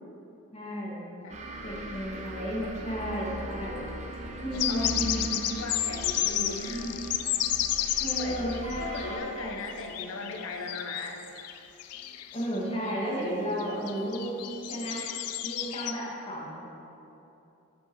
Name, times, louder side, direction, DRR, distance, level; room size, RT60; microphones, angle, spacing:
voice 1, 0.5-1.0 1.6-3.9 4.4-5.5 6.7-7.0 8.0-9.6 12.0-14.3 14.7-15.0 15.4-16.5, equal, 25° left, -5 dB, 1.8 m, -33 dB
sound 1, 1.3-9.2, right 1 dB, 30° right, 0.7 m, -40 dB
sound 2, 4.5-9.1 9.7-12.6 12.9-13.0 13.6-15.9, left 12 dB, 85° left, 0.4 m, -31 dB
voice 2, 4.7-5.0 5.6-6.8 8.2-8.5 8.8-11.2, left 3 dB, 60° left, 3 dB, 0.9 m, -37 dB
10.0 x 5.1 x 4.6 m, 2.9 s
head